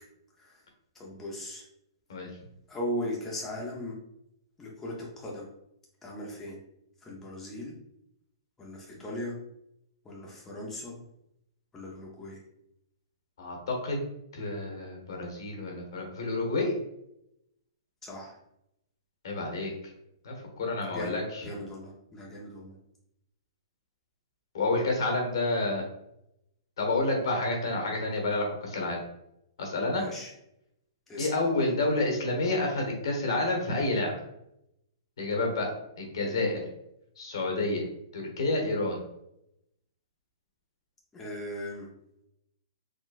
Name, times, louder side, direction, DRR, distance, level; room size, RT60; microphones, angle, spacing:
voice 1, 1.0-1.6 2.7-3.9 4.6-5.5 6.0-6.6 7.0-7.7 8.6-9.3 10.0-10.9 11.7-12.4 18.0-18.4 20.9-22.8 30.0-30.3 31.1-31.3 41.1-41.9, left 1 dB, 10° left, -3 dB, 0.6 m, -38 dB
voice 2, 13.4-14.0 14.3-16.7 19.2-19.7 20.2-21.5 24.5-25.9 26.8-29.0 29.6-30.0 31.2-34.1 35.2-35.7 36.0-36.6 37.2-37.8 38.1-39.0, left 2 dB, 70° left, 1 dB, 1.2 m, -29 dB
3.9 x 2.1 x 2.5 m, 0.81 s
hypercardioid pair, 140°, 3 cm